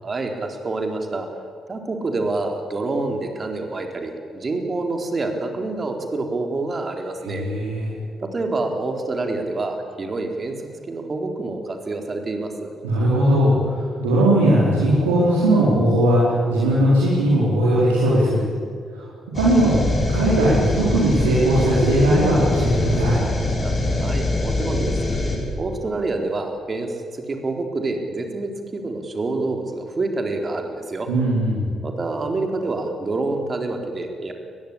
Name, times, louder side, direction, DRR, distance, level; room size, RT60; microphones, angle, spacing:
voice 1, 0.0-1.3 1.7-7.5 8.2-10.6 10.9-12.7 23.6-23.7 24.0-25.0 25.6-31.1 31.8-34.3, right 2 dB, 35° right, 4 dB, 4.1 m, -27 dB
voice 2, 7.2-7.9 12.8-16.2 16.5-18.4 18.9-19.0 19.3-19.8 20.1-23.2 31.1-31.6, right 1 dB, 75° right, -7 dB, 4.4 m, -18 dB
sound 1, 19.3-25.4, left 2 dB, 35° left, 6.9 m, -23 dB
22.5 x 21.0 x 8.8 m, 2.2 s
figure-of-eight pair, 40°, 0 cm